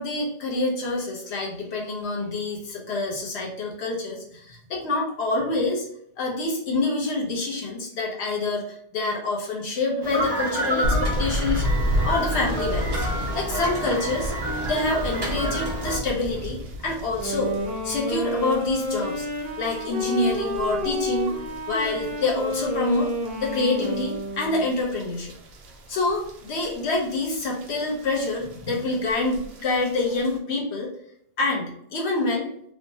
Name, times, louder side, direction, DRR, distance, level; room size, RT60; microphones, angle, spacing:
voice 1, 0.0-5.8 6.2-11.8 12.0-13.1 13.3-14.3 14.7-17.5 17.8-19.3 19.6-21.3 21.7-23.1 23.4-25.3 25.9-30.9 31.4-32.5, left 2 dB, 80° left, -1 dB, 1.0 m, -26 dB
sound 1, 10.0-16.0, right 1 dB, 25° right, 0.8 m, -29 dB
sound 2, 10.8-30.4, equal, 75° right, 0.8 m, -33 dB
Wind instrument woodwind instrument, 17.2-24.8, equal, 50° right, 1.0 m, -30 dB
3.2 x 2.1 x 2.6 m, 0.69 s
omnidirectional pair, 1.1 m